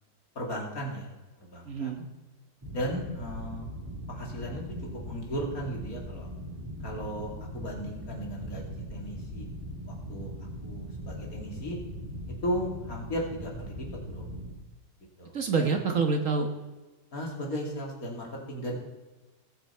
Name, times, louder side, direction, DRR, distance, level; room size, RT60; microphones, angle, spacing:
voice 1, 0.3-1.1 1.4-1.9 2.7-3.7 4.1-4.6 5.0-6.3 6.8-9.5 10.1-10.3 10.6-11.8 12.4-14.3 15.2-15.3 17.1-18.8, equal, 55° left, -1 dB, 3.0 m, -36 dB
voice 2, 1.7-2.0 15.3-16.5, right 4 dB, 50° right, 5 dB, 1.4 m, -26 dB
sound 1, 2.6-14.5, equal, 15° right, 1.6 m, -40 dB
19.5 x 7.9 x 4.5 m, 1.2 s
omnidirectional pair, 1.8 m